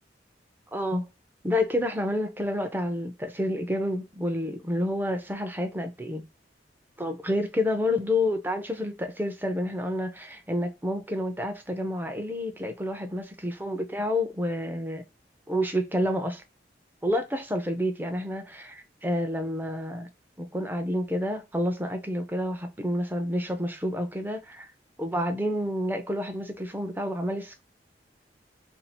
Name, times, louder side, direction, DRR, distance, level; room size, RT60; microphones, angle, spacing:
voice 1, 0.7-1.1 1.4-6.2 7.0-15.0 15.5-16.4 17.0-20.1 20.4-24.7 25.0-27.6, left 1 dB, 10° right, 0.6 m, -29 dB
2.7 x 2.4 x 4.2 m
head